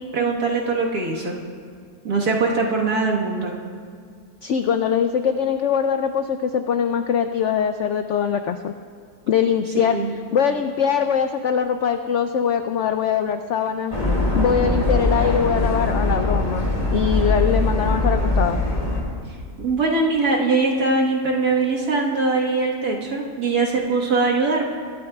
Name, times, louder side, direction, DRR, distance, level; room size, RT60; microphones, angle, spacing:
voice 1, 0.0-1.4 2.0-3.5 9.9-10.1 19.6-24.7, right 3 dB, 65° right, -2 dB, 2.0 m, -21 dB
voice 2, 4.4-8.7 9.3-10.0 10.3-13.9 14.3-18.6, left 7 dB, 90° left, 7 dB, 0.6 m, -22 dB
sound 1, 13.9-19.0, left 2 dB, 20° left, 2.0 m, -21 dB
24.0 x 12.0 x 2.3 m, 2.1 s
omnidirectional pair, 1.8 m